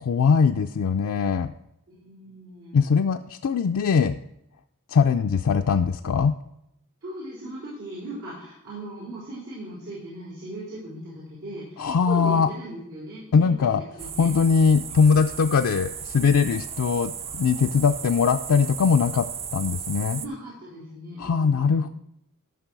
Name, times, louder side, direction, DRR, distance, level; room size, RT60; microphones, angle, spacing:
voice 1, 0.0-1.5 2.7-4.2 4.9-6.3 11.8-12.5 13.3-13.8 14.2-20.2 21.2-21.9, left 5 dB, 70° left, 5 dB, 0.4 m, -21 dB
voice 2, 1.9-2.9 7.0-14.3 20.2-21.9, right 1 dB, 90° right, -11 dB, 4.4 m, -38 dB
sound 1, 14.0-20.3, right 7 dB, 30° right, 0.4 m, -35 dB
12.5 x 6.0 x 4.7 m, 0.81 s
head